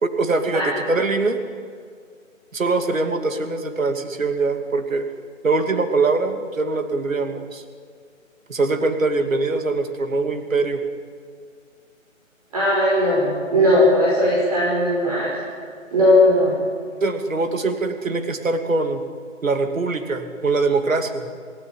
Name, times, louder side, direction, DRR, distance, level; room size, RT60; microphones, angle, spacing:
voice 1, 0.0-1.4 2.5-5.1 5.4-7.6 8.5-10.8 17.0-19.0 19.4-21.3, right 3 dB, 75° right, 7 dB, 2.7 m, -22 dB
voice 2, 12.5-15.3 15.9-16.6, left 1 dB, 30° right, -5 dB, 5.9 m, -17 dB
28.5 x 17.5 x 9.9 m, 2.1 s
hypercardioid pair, 180°, 40 cm